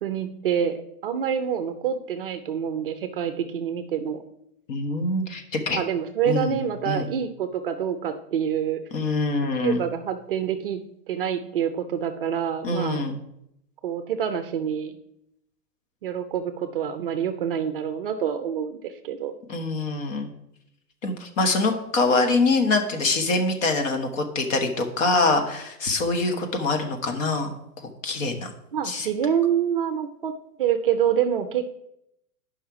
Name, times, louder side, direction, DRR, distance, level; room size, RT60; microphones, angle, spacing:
voice 1, 0.0-4.2 5.7-8.8 9.6-10.8 11.1-13.0 13.8-15.0 16.0-19.3 28.7-30.3 30.6-31.7, right 8 dB, 40° right, 8 dB, 0.5 m, -26 dB
voice 2, 4.7-5.8 6.2-6.6 6.8-7.1 8.9-9.8 12.6-13.2 19.5-20.3 21.0-27.5 28.0-28.5 28.8-29.1, left 3 dB, 55° left, 5 dB, 1.5 m, -24 dB
8.6 x 5.6 x 4.8 m, 0.79 s
hypercardioid pair, 155°, 47 cm